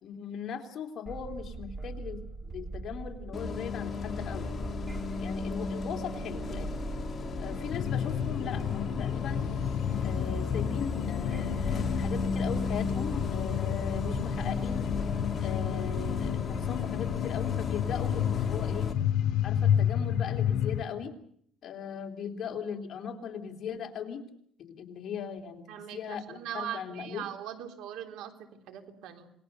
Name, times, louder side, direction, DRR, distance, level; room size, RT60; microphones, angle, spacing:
voice 1, 0.0-4.5 5.2-6.7 7.4-9.5 10.0-14.9 15.4-18.9 19.4-21.1 21.6-24.2 24.6-25.7 25.9-27.2, left 7 dB, 50° left, 3 dB, 3.3 m, -39 dB
sound 1, 1.1-16.3, right 3 dB, 25° right, 2.5 m, -42 dB
Bus, 3.3-18.9, left 4 dB, 30° left, 3.0 m, -35 dB
sound 2, 7.7-20.8, left 10 dB, 75° left, 1.0 m, -31 dB
voice 2, 25.7-29.3, right 10 dB, 80° right, 5 dB, 3.5 m, -40 dB
27.5 x 20.0 x 6.8 m, 0.65 s
cardioid pair, 120°, 0 cm